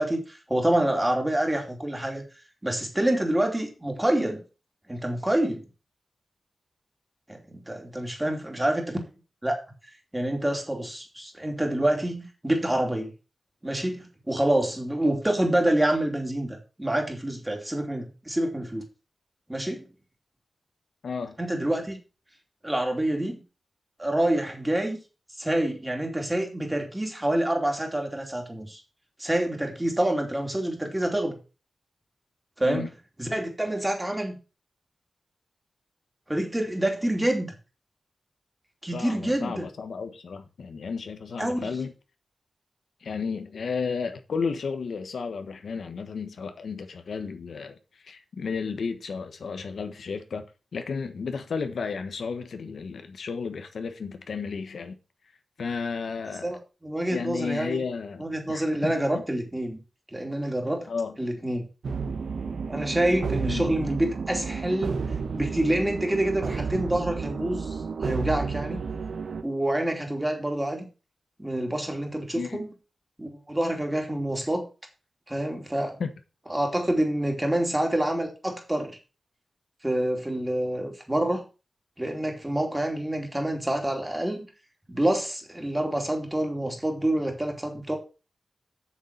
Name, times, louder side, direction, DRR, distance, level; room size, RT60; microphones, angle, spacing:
voice 1, 0.0-2.3 2.6-4.4 4.9-5.6 7.3-9.0 9.4-9.6 10.1-13.1 13.6-18.8 19.5-19.9 21.4-22.0 22.6-23.4 24.0-25.0 25.4-28.8 29.2-31.4 32.6-32.9 33.2-34.4 36.3-37.5 38.8-39.7 41.4-41.7 56.4-57.8 58.2-59.8 60.1-60.9 61.2-61.6 62.7-64.9 65.3-68.8 69.4-70.9 71.4-72.7 73.2-74.6 75.3-76.0 76.5-79.0 79.8-81.4 82.0-84.5 84.9-88.0, right 1 dB, 15° right, 2.8 m, -27 dB
voice 2, 21.0-21.4 32.6-32.9 38.9-41.9 43.0-50.4 50.7-55.0 55.6-56.5 57.1-59.2 60.9-61.2 63.4-63.7 72.3-72.7 76.0-76.1, left 5 dB, 85° left, 1.3 m, -33 dB
sound 1, 61.8-69.4, right 5 dB, 80° right, 1.0 m, -31 dB
7.6 x 6.7 x 5.9 m
wide cardioid pair, 85°, 0 cm